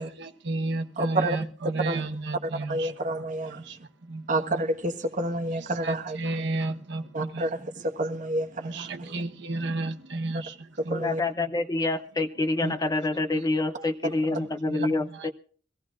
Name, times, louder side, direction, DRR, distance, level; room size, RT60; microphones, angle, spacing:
voice 1, 0.0-3.2 3.6-4.3 5.8-7.4 8.6-11.0 12.6-12.7 13.7-13.9 14.3-15.3, right 2 dB, 65° right, 1.0 m, -33 dB
voice 2, 1.0-1.4 1.8-2.0 2.7-3.6 4.3-6.2 7.1-9.2 10.8-11.2, right 1 dB, 40° right, 1.3 m, -29 dB
voice 3, 10.9-15.3, left 2 dB, 20° left, 0.6 m, -27 dB
23.5 x 16.5 x 2.4 m
head